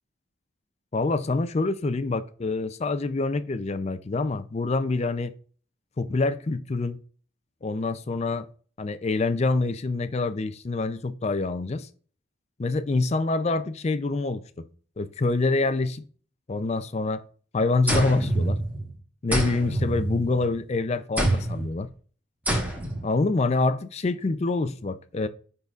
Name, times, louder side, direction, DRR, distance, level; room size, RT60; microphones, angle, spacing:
voice 1, 0.9-5.3 6.0-7.0 7.6-8.5 8.8-11.9 12.6-14.7 15.0-16.0 16.5-17.2 17.5-18.6 19.2-21.9 23.0-25.3, left 3 dB, 30° left, 0.4 m, -26 dB
sound 1, 17.9-18.9 19.3-20.6 21.2-21.7 22.5-23.1, right 1 dB, 10° right, 1.1 m, -26 dB
10.5 x 3.9 x 2.4 m
head